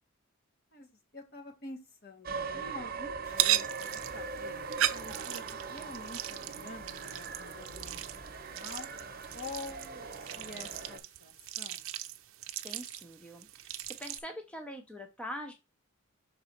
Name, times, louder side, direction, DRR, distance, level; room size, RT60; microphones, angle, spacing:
voice 1, 0.7-3.6 3.9-4.6 4.9-8.9 9.3-11.8, left 3 dB, 50° left, 5 dB, 1.5 m, -47 dB
sound 1, 2.2-11.0, right 4 dB, 45° right, 0.8 m, -41 dB
sound 2, 3.3-14.2, right 13 dB, 70° right, 0.5 m, -37 dB
voice 2, 12.6-15.5, equal, 5° left, 5 dB, 0.5 m, -43 dB
6.0 x 3.9 x 4.4 m, 0.26 s
head